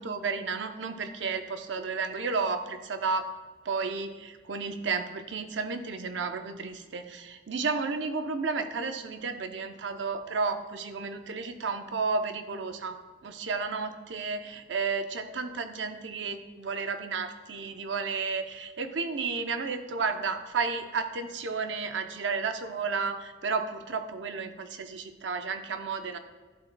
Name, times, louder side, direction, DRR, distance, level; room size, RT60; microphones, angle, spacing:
voice 1, 0.0-3.3 3.6-26.2, right 4 dB, 85° right, 7 dB, 0.6 m, -32 dB
11.5 x 7.2 x 2.2 m, 1.3 s
head